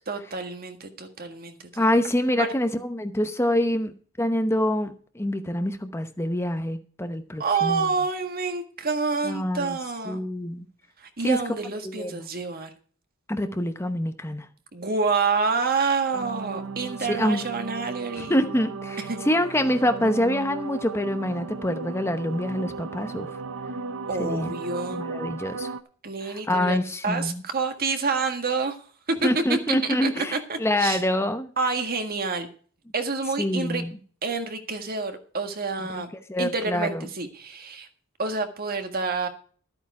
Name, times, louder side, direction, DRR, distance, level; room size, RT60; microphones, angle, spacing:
voice 1, 0.1-1.8 2.4-2.5 7.4-10.2 11.0-12.7 14.7-18.4 19.1-19.2 24.1-25.0 26.0-26.8 27.0-31.0 31.6-32.5 32.9-33.8 34.2-36.1 36.4-37.9 38.2-39.3, right 4 dB, 45° right, 6 dB, 1.7 m, -28 dB
voice 2, 1.8-7.8 9.2-9.8 10.1-10.7 11.2-11.4 11.8-12.2 13.3-14.5 17.1-17.4 18.2-23.3 24.2-24.5 24.9-25.7 26.2-27.4 29.2-31.5 33.4-33.9 35.9-36.0 36.3-37.0, left 1 dB, 10° left, 7 dB, 0.9 m, -26 dB
sound 1, 16.1-25.8, right 4 dB, 60° right, 0.8 m, -36 dB
13.0 x 8.7 x 4.7 m, 0.43 s
head